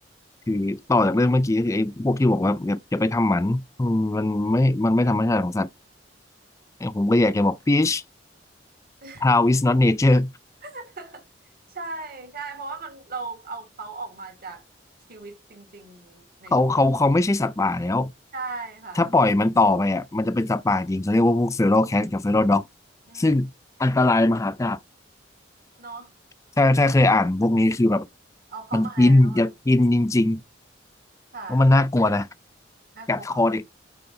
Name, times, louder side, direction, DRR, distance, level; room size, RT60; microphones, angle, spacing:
voice 1, 0.5-5.7 6.8-8.0 9.2-10.3 16.5-18.1 19.0-22.7 23.1-23.5 23.8-24.8 26.6-28.1 28.7-30.4 31.5-32.3 33.1-33.6, left 2 dB, 15° left, 0.4 m, -20 dB
voice 2, 10.6-11.2 11.7-14.6 15.1-16.6 18.3-19.1 23.1-23.4 25.8-26.1 28.5-29.5 31.3-31.6 32.9-33.4, right 3 dB, 50° right, 2.2 m, -37 dB
6.7 x 4.7 x 3.8 m
head